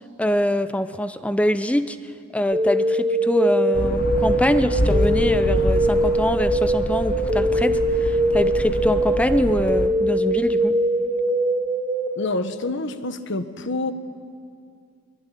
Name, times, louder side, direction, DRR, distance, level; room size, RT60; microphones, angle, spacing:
voice 1, 0.2-2.0 2.3-10.8, equal, 5° left, 0.7 m, -24 dB
sound 1, 2.5-12.1, right 1 dB, 10° right, 3.0 m, -22 dB
sound 2, 3.7-9.9, left 1 dB, 45° left, 1.1 m, -26 dB
voice 2, 12.1-13.9, left 2 dB, 60° left, 1.3 m, -27 dB
23.0 x 22.0 x 10.0 m
head